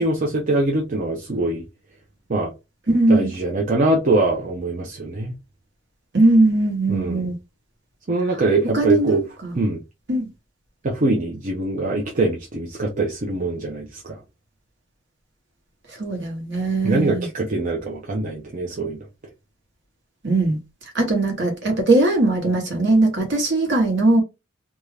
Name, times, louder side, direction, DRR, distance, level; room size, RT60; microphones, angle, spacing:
voice 1, 0.0-1.6 2.3-2.5 3.1-5.3 6.9-7.3 8.1-9.2 9.5-9.8 10.8-14.2 16.8-19.0, right 2 dB, 40° right, 0.6 m, -23 dB
voice 2, 2.9-3.3 6.1-7.4 8.6-9.6 10.1-10.3 16.0-17.3 20.2-20.6 20.9-24.2, right 2 dB, 60° right, 1.1 m, -19 dB
2.6 x 2.3 x 3.2 m
head